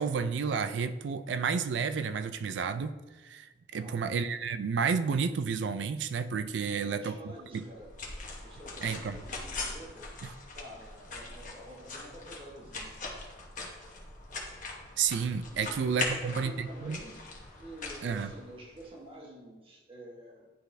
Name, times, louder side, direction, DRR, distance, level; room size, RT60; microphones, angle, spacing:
voice 1, 0.0-3.0 3.2-7.2 7.5-7.6 8.8-9.2 15.0-17.0 18.0-18.3, right 6 dB, 70° right, 13 dB, 0.3 m, -31 dB
voice 2, 3.7-4.1 6.7-8.0 8.4-10.1 10.5-14.0 15.5-17.2 17.5-20.5, right 1 dB, 30° right, -2 dB, 1.2 m, -49 dB
sound 1, 7.5-18.9, left 3 dB, 45° left, 1.0 m, -41 dB
10.5 x 4.0 x 2.6 m, 1.3 s
head